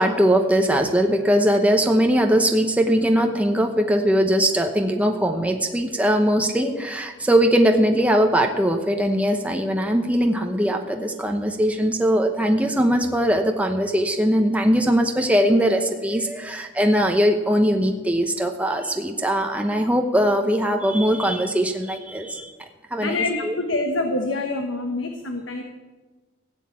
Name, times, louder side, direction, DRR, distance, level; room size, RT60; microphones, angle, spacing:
voice 1, 0.0-22.5 22.9-23.6, equal, 5° right, 4 dB, 0.9 m, -20 dB
voice 2, 23.0-25.6, left 2 dB, 75° left, 5 dB, 1.2 m, -26 dB
15.5 x 8.2 x 8.5 m, 1.2 s
head